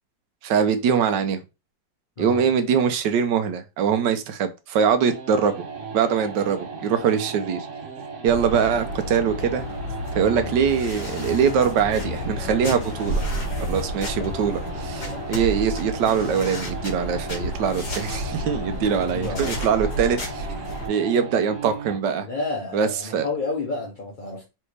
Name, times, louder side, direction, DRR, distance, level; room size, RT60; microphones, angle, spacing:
voice 1, 0.4-1.4 2.2-5.5 5.9-7.7 8.2-9.7 10.1-13.2 13.7-20.5 20.9-22.3 22.7-23.3, right 7 dB, 75° right, 1.3 m, -23 dB
sound 1, 5.1-22.1, right 5 dB, 50° right, 1.0 m, -37 dB
sound 2, 8.3-20.9, left 1 dB, 60° left, 2.5 m, -31 dB
voice 2, 10.2-10.6 18.9-19.5 22.2-24.5, left 3 dB, 40° left, 0.7 m, -31 dB
4.2 x 3.4 x 3.3 m
omnidirectional pair, 2.0 m